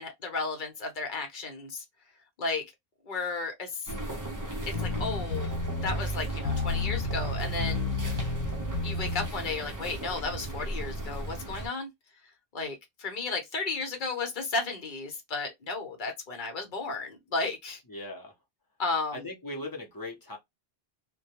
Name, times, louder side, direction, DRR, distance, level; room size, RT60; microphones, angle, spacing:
voice 1, 0.0-1.8 2.4-2.6 3.1-3.9 4.7-5.5 5.8-7.9 8.8-11.9 12.5-17.8 18.8-19.3, left 3 dB, 55° left, 0.9 m, -33 dB
sound 1, 3.9-11.7, right 1 dB, 25° right, 0.4 m, -36 dB
sound 2, 4.7-9.3, left 3 dB, 90° left, 0.8 m, -31 dB
voice 2, 17.9-18.3 19.1-20.4, left 1 dB, 25° left, 0.7 m, -39 dB
2.2 x 2.2 x 2.8 m
omnidirectional pair, 1.0 m